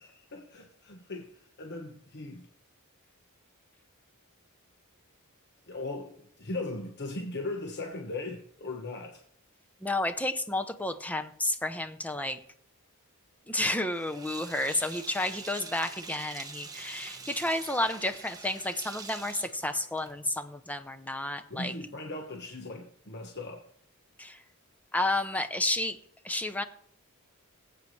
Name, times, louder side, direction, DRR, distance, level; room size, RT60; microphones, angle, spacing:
voice 1, 0.0-2.5 5.7-9.2 21.5-23.7, left 2 dB, 50° left, 1.2 m, -38 dB
voice 2, 9.8-12.4 13.5-21.7 24.2-24.4 24.9-26.0 26.2-26.6, left 1 dB, 5° left, 0.7 m, -31 dB
Sink (filling or washing), 13.9-20.3, right 4 dB, 15° right, 1.2 m, -45 dB
19.5 x 8.3 x 3.2 m
head